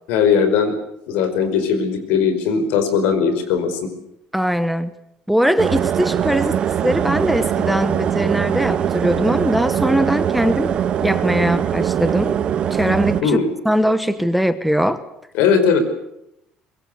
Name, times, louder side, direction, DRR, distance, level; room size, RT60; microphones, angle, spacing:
voice 1, 0.1-0.7 1.1-3.8 13.2-13.5 15.3-15.8, left 6 dB, 85° left, 9 dB, 5.1 m, -18 dB
voice 2, 4.3-4.9 5.3-10.7 11.0-12.4 12.7-13.3 13.6-15.0, equal, ahead, 11 dB, 1.0 m, -20 dB
sound 1, 5.6-13.2, right 9 dB, 35° right, 1.1 m, -21 dB
24.0 x 22.0 x 8.2 m, 0.80 s
cardioid pair, 170°, 3 cm